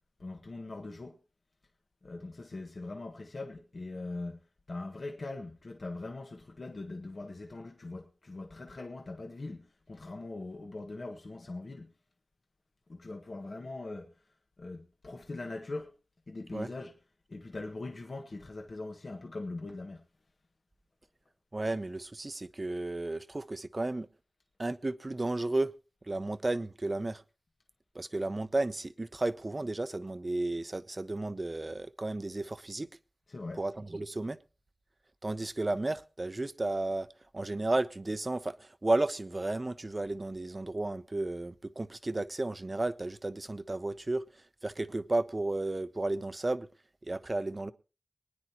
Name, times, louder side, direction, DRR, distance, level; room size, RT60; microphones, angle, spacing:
voice 1, 0.2-1.2 2.0-4.4 4.7-11.9 12.9-14.1 14.6-15.9 16.3-16.9 17.3-20.0 33.3-33.6, left 2 dB, 70° left, 1.3 m, -41 dB
voice 2, 21.5-24.1 24.6-25.7 26.1-27.2 27.9-32.9 33.6-34.4 35.2-37.1 37.3-44.2 44.6-46.7 47.0-47.7, right 2 dB, 40° right, 0.6 m, -33 dB
23.5 x 9.7 x 2.9 m
wide cardioid pair, 50°, 0 cm